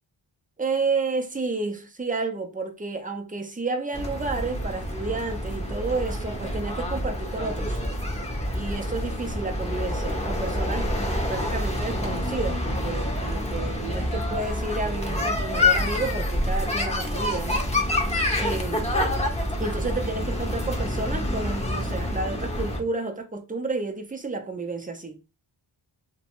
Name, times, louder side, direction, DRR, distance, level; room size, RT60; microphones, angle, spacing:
voice 1, 0.6-7.8 8.5-10.9 11.3-17.6 18.4-18.9 19.6-25.2, right 3 dB, 15° right, 0.6 m, -31 dB
sound 1, 3.9-22.8, left 1 dB, 15° left, 0.8 m, -27 dB
2.8 x 2.2 x 2.9 m
wide cardioid pair, 60°, 49 cm